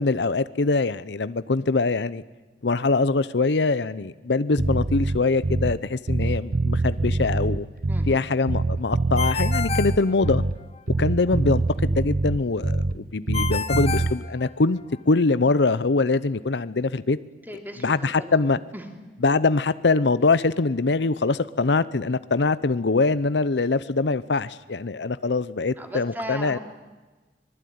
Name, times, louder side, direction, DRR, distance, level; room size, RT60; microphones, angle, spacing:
voice 1, 0.0-2.2 2.6-7.7 8.1-10.4 11.0-14.8 15.1-17.2 17.8-18.6 19.2-26.6, left 3 dB, 75° left, 16 dB, 0.7 m, -23 dB
Bass guitar, 4.6-5.8 6.1-8.2 8.5-10.6 10.9-13.0 13.3-14.2, right 2 dB, 55° right, 0.8 m, -24 dB
voice 2, 7.9-8.3 17.4-18.4 18.7-18.8 25.8-26.6, equal, 10° right, 4 dB, 3.1 m, -37 dB
Ringtone, 9.2-10.8 13.3-15.0, left 6 dB, 35° left, 1.2 m, -30 dB
25.0 x 20.5 x 9.5 m, 1.2 s
head